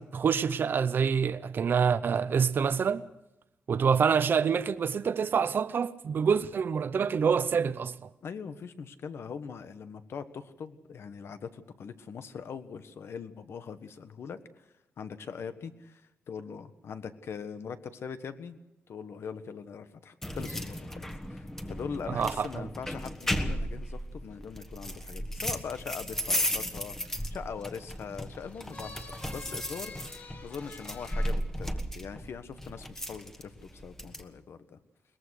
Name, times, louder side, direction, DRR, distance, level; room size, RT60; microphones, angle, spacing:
voice 1, 0.0-3.1 3.7-8.1 22.1-22.7, right 6 dB, 50° right, 0.7 m, -26 dB
voice 2, 8.2-14.7 15.0-18.6 18.9-34.8, left 6 dB, 70° left, 1.4 m, -42 dB
sound 1, 20.2-34.2, equal, 10° left, 1.4 m, -35 dB
sound 2, 26.1-31.3, left 3 dB, 45° left, 3.6 m, -50 dB
22.0 x 20.5 x 6.5 m
wide cardioid pair, 170°, 4 cm